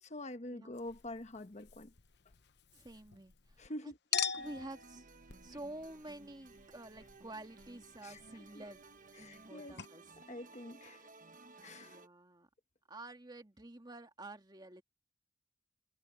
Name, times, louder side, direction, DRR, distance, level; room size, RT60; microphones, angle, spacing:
voice 1, 0.0-1.9 3.6-4.0 8.0-8.2 8.5-8.6 9.1-9.8 10.3-11.1 11.6-12.0, left 1 dB, 35° left, 1.2 m, -46 dB
Chink clink, 0.7-3.7 4.1-9.5 9.8-9.9, left 8 dB, 60° left, 1.0 m, -44 dB
voice 2, 2.7-5.1 5.4-8.8 9.2-10.0 11.8-12.5 12.9-14.8, right 1 dB, 20° right, 1.8 m, -50 dB
sound 1, 4.4-12.1, right 3 dB, 45° right, 1.2 m, -58 dB
head